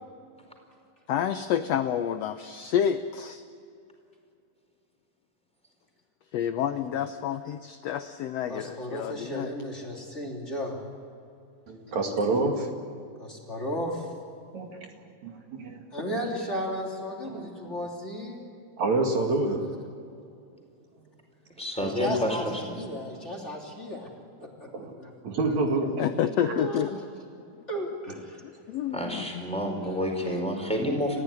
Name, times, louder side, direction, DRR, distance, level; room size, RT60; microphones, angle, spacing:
voice 1, 1.1-3.4 6.3-9.5 26.0-27.0 28.7-29.4, left 9 dB, 75° left, 9 dB, 1.5 m, -29 dB
voice 2, 8.5-10.8 13.2-14.1 15.9-18.4 21.8-24.1 24.4-24.7 25.0-25.6 26.5-26.9 27.7-28.4 29.4-29.6, equal, 20° left, -1 dB, 3.2 m, -34 dB
voice 3, 11.7-12.7 14.5-14.9 15.2-15.9 17.3-17.4 18.8-19.6 24.7-24.9 25.2-26.1 26.4-26.5, right 3 dB, 60° right, 2 dB, 3.5 m, -27 dB
voice 4, 21.6-22.4 22.7-22.8 28.9-31.2, equal, ahead, 2 dB, 4.4 m, -29 dB
30.0 x 15.5 x 9.8 m, 2.5 s
omnidirectional pair, 3.8 m